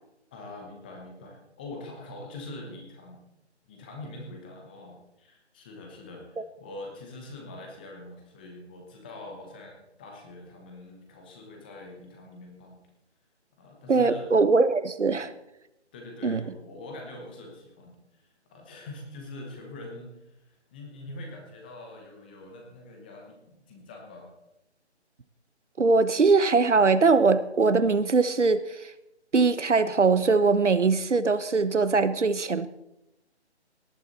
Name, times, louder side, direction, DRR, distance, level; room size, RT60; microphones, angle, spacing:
voice 1, 0.3-3.2 3.7-12.8 13.6-14.3 15.1-15.2 15.9-24.3, left 2 dB, 10° left, 1 dB, 1.0 m, -44 dB
voice 2, 13.9-15.3 16.2-16.4 25.8-28.9 29.3-32.7, right 4 dB, 85° right, 14 dB, 1.1 m, -21 dB
18.0 x 10.5 x 4.1 m, 0.88 s
figure-of-eight pair, 160°, 35 cm